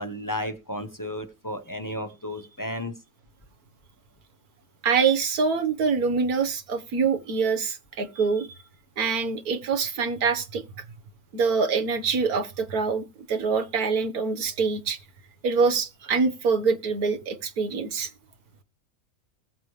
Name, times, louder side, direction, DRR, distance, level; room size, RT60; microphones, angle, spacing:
voice 1, 0.0-2.9, left 1 dB, 15° left, 1.2 m, -33 dB
voice 2, 4.8-8.5 9.0-10.8 11.3-15.0 15.4-18.1, right 5 dB, 70° right, 1.8 m, -25 dB
20.0 x 7.0 x 3.2 m
omnidirectional pair, 1.6 m